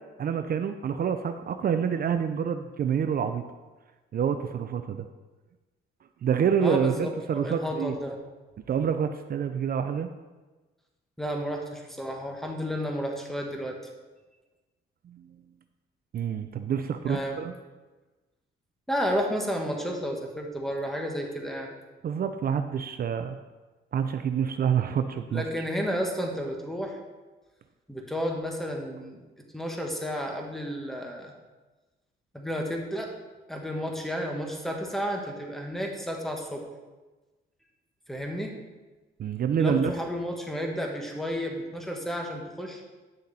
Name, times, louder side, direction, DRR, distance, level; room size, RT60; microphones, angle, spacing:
voice 1, 0.2-3.4 4.1-5.1 6.2-8.0 8.7-10.1 15.1-15.3 16.1-17.5 22.0-23.4 23.9-25.4 39.2-39.9, right 7 dB, 50° right, 8 dB, 0.6 m, -27 dB
voice 2, 6.6-8.2 11.2-13.8 17.0-17.4 18.9-21.7 25.3-27.0 27.9-29.2 29.5-31.3 32.3-33.1 33.5-36.6 38.1-38.5 39.6-42.8, equal, ahead, 1 dB, 1.6 m, -32 dB
10.0 x 6.4 x 4.2 m, 1.2 s
cardioid pair, 90°, 20 cm